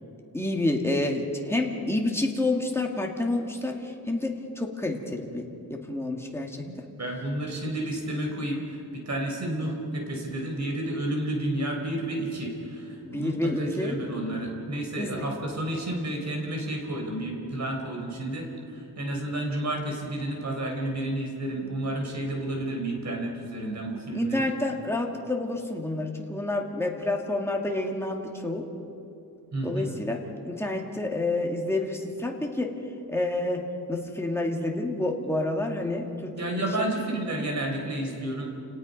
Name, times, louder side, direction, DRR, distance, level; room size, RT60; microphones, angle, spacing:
voice 1, 0.3-6.6 13.0-14.0 15.0-15.2 24.1-28.7 29.6-30.2 30.4-32.7 33.1-37.0, left 2 dB, 5° left, 0 dB, 2.1 m, -29 dB
voice 2, 6.6-8.6 8.9-24.5 29.5-29.9 36.3-38.5, right 1 dB, 45° right, 1 dB, 4.0 m, -31 dB
29.5 x 18.5 x 5.4 m, 2.8 s
wide cardioid pair, 150°, 39 cm